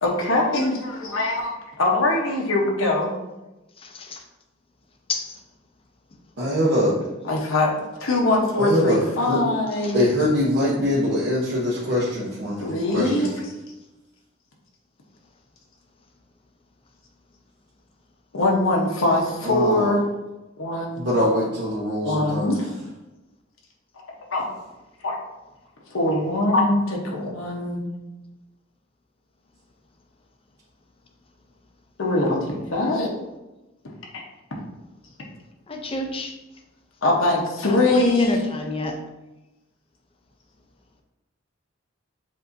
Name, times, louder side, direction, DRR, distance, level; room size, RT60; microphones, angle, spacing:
voice 1, 0.0-1.5 1.8-3.1 7.3-7.7 8.0-10.0 12.6-13.3 18.3-20.0 20.6-21.1 22.0-22.7 24.3-24.4 25.0-25.2 25.9-27.8 32.0-33.1 34.1-34.2 37.0-38.4, left 2 dB, 80° left, -2 dB, 0.9 m, -22 dB
voice 2, 3.8-4.2 5.1-5.4 9.8-10.1 35.7-36.3 37.6-39.0, left 2 dB, 30° left, 4 dB, 0.5 m, -30 dB
voice 3, 6.4-7.0 8.6-9.4 9.9-13.3 19.4-19.9 20.9-22.6, left 1 dB, 60° right, -7 dB, 0.9 m, -23 dB
7.4 x 2.7 x 2.6 m, 1.0 s
head